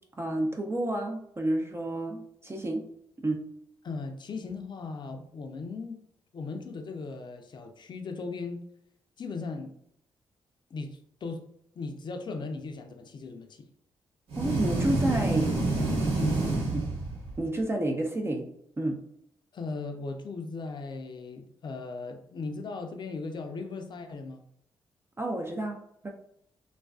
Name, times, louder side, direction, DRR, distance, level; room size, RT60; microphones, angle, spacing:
voice 1, 0.2-2.8 3.2-3.4 14.4-15.6 16.7-16.9 17.4-18.5 18.8-19.0 25.2-26.1, right 1 dB, 25° right, 2 dB, 0.4 m, -30 dB
voice 2, 3.8-6.0 6.3-8.6 9.2-9.7 10.7-11.4 11.8-13.6 16.2-16.4 19.5-24.4, left 3 dB, 45° left, 5 dB, 0.5 m, -37 dB
sound 1, 14.3-17.5, right 2 dB, 70° right, 1.0 m, -28 dB
2.4 x 2.2 x 2.3 m, 0.72 s
hypercardioid pair, 45°, 10 cm